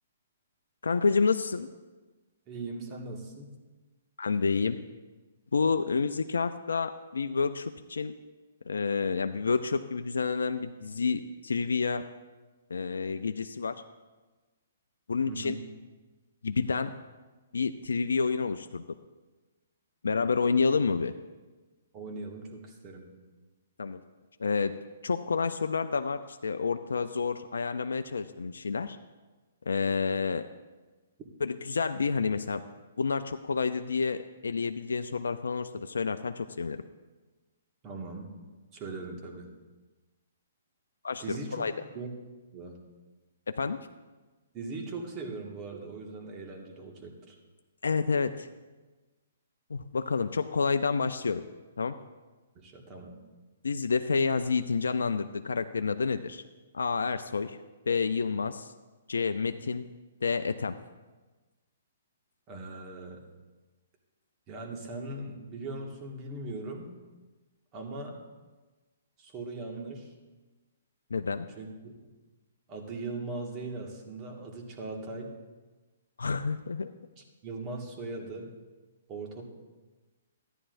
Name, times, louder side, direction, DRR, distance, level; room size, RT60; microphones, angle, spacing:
voice 1, 0.8-1.7 4.2-4.8 5.5-8.1 8.7-12.0 12.7-13.7 15.1-15.6 16.4-16.9 17.5-18.8 20.0-21.1 23.8-24.0 24.4-24.7 25.0-29.0 29.7-30.5 31.4-32.6 33.0-36.8 41.0-41.7 43.5-43.8 47.8-48.5 49.7-51.4 51.8-52.0 53.6-56.4 56.7-57.6 57.9-58.7 59.1-59.9 60.2-60.7 71.1-71.5 76.2-76.9, left 5 dB, 85° left, 8 dB, 0.4 m, -29 dB
voice 2, 2.5-3.5 15.3-15.6 21.9-23.1 37.8-38.3 38.7-39.5 41.2-41.7 41.9-42.1 42.5-42.8 44.5-47.3 52.6-53.1 62.5-63.2 64.5-66.9 67.7-68.2 69.2-70.1 71.6-71.7 72.7-75.3 77.2-78.5 79.1-79.4, right 3 dB, 30° right, 0 dB, 1.8 m, -39 dB
14.0 x 9.9 x 2.6 m, 1.2 s
hypercardioid pair, 135°, 0 cm